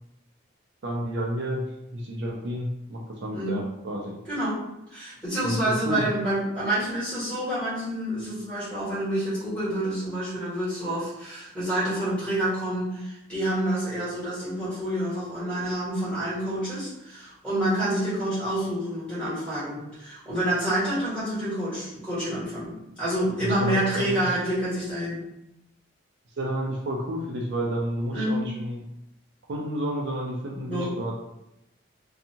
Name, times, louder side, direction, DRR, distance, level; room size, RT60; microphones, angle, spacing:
voice 1, 0.8-1.6 1.9-4.2 5.4-6.1 23.4-24.3 26.4-28.8 29.5-31.1, equal, 55° right, -1 dB, 0.4 m, -30 dB
voice 2, 4.3-4.6 4.9-25.2 28.1-28.4 30.7-30.9, right 1 dB, 5° left, -12 dB, 1.4 m, -28 dB
2.6 x 2.3 x 2.7 m, 0.86 s
head